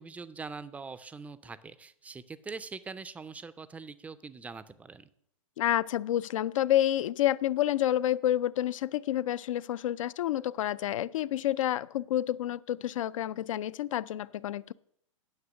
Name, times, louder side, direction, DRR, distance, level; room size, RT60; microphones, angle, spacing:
voice 1, 0.0-5.1, right 4 dB, 10° right, 15 dB, 0.4 m, -43 dB
voice 2, 5.6-14.7, left 12 dB, 70° left, 18 dB, 0.4 m, -29 dB
9.9 x 6.3 x 6.2 m, 0.70 s
hypercardioid pair, 125°, 17 cm